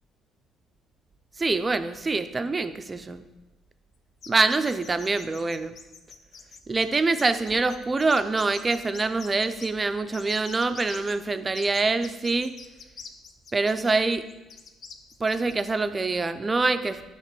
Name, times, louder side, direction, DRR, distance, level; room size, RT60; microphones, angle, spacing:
voice 1, 1.4-3.2 4.3-5.7 6.7-12.5 13.5-14.2 15.2-17.0, right 3 dB, 20° right, 10 dB, 0.3 m, -25 dB
sound 1, 4.2-9.7 10.1-11.1 11.5-15.7, left 5 dB, 45° left, 0.5 m, -45 dB
7.2 x 2.9 x 5.9 m, 1.0 s
cardioid pair, 145°, 0 cm